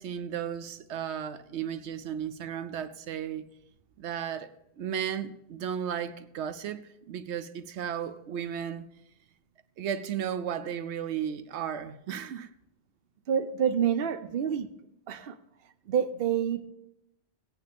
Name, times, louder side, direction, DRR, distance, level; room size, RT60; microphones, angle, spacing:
voice 1, 0.0-3.5 4.0-4.5 4.8-8.9 9.8-12.5, right 9 dB, 85° right, 0.9 m, -34 dB
voice 2, 13.3-14.7 15.1-15.4 15.9-16.7, right 8 dB, 60° right, 0.9 m, -27 dB
17.5 x 9.0 x 3.5 m
omnidirectional pair, 1.1 m